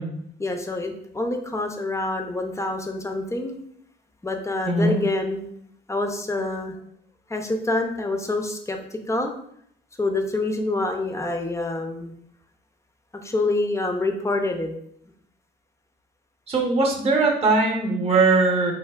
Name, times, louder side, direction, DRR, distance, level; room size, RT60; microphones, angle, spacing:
voice 1, 0.4-3.6 4.2-5.5 5.9-6.8 7.3-9.4 10.0-12.1 13.2-14.7, left 2 dB, 15° left, 4 dB, 0.4 m, -26 dB
voice 2, 16.5-18.7, right 3 dB, 30° right, 1 dB, 0.7 m, -20 dB
3.4 x 2.6 x 2.2 m, 0.69 s
cardioid pair, 90°, 20 cm